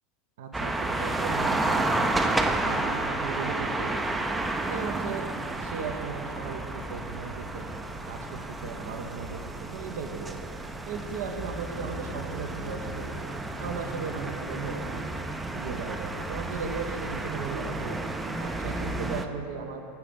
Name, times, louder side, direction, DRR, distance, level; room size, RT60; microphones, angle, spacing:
voice 1, 0.4-4.2 4.7-7.7 8.0-10.4 10.9-13.1 13.6-15.1 15.5-18.0 18.4-19.8, right 5 dB, 60° right, 4 dB, 0.6 m, -37 dB
sound 1, 0.5-19.3, right 2 dB, 10° right, 0.4 m, -31 dB
sound 2, 11.4-14.4, equal, 75° left, 0.5 m, -50 dB
6.9 x 5.7 x 5.1 m, 2.6 s
figure-of-eight pair, 80°, 0 cm